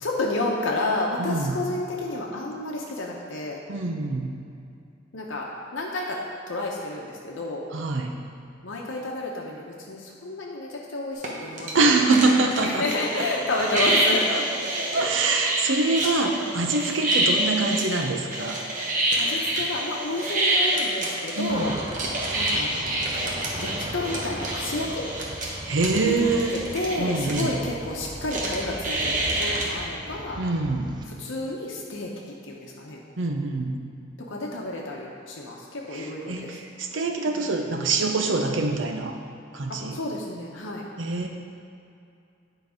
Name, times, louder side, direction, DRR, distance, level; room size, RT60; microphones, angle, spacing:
voice 1, 0.0-3.6 5.1-5.5 5.7-6.2 6.5-7.6 8.6-12.2 12.6-14.2 14.9-15.3 16.8-17.0 19.2-21.7 22.3-22.9 23.6-25.0 26.0-30.4 31.1-32.1 32.5-33.0 34.3-36.6 37.3-37.4 39.7-40.9, left 2 dB, 80° left, -2 dB, 0.8 m, -30 dB
voice 2, 1.2-1.6 3.7-4.3 7.7-8.1 11.7-12.8 13.2-13.3 14.3-14.4 14.9-18.6 21.4-21.8 25.7-26.6 27.0-27.5 30.4-30.9 33.2-33.7 35.9-39.1 39.5-40.0 41.0-41.3, right 3 dB, 75° right, 3 dB, 0.8 m, -24 dB
sound 1, 11.2-11.3 11.6-27.5 28.3-29.7, right 1 dB, 40° right, 1.1 m, -27 dB
sound 2, 21.5-31.1, right 2 dB, 20° right, 0.5 m, -38 dB
9.4 x 4.0 x 5.1 m, 2.6 s
head